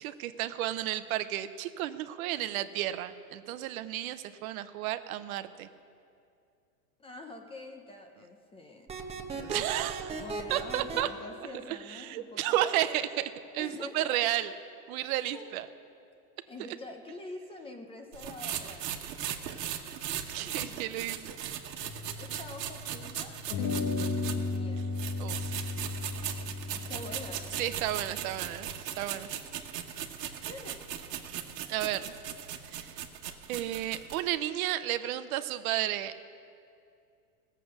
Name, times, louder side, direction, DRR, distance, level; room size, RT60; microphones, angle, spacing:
voice 1, 0.0-5.7 9.3-10.1 10.5-11.1 11.7-14.5 14.9-15.7 20.3-21.3 25.2-25.7 27.6-28.7 29.0-29.3 31.7-32.1 32.7-32.9 33.5-36.3, right 13 dB, 60° right, 11 dB, 0.8 m, -32 dB
voice 2, 7.0-8.9 9.3-12.6 13.6-14.3 15.3-15.5 16.5-18.8 20.4-20.8 22.2-24.8 26.7-27.6 29.3-29.4 30.5-30.8, left 2 dB, 10° left, 4 dB, 0.6 m, -46 dB
sound 1, 8.9-11.0, right 4 dB, 15° right, 0.9 m, -37 dB
sound 2, 18.1-24.6 24.9-34.2, right 10 dB, 90° right, 1.3 m, -38 dB
sound 3, 21.8-23.0 23.5-28.7, left 3 dB, 40° left, 1.1 m, -35 dB
16.5 x 7.7 x 6.4 m, 2.4 s
supercardioid pair, 140°, 48 cm